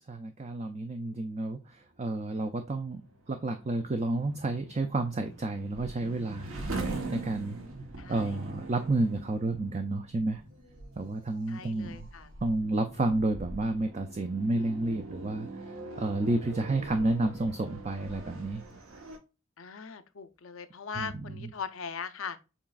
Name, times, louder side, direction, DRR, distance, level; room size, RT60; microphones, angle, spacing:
voice 1, 0.1-3.0 3.3-7.6 8.1-10.4 11.0-12.1 12.4-18.6 20.9-21.5, right 2 dB, 30° right, 0.4 m, -31 dB
sound 1, 2.2-19.2, right 3 dB, 70° right, 1.1 m, -43 dB
sound 2, 10.3-12.6 14.5-16.3 17.9-18.4, equal, 55° right, 2.7 m, -59 dB
voice 2, 11.5-12.3 19.6-22.4, left 6 dB, 65° left, 0.6 m, -40 dB
7.2 x 3.0 x 2.4 m
head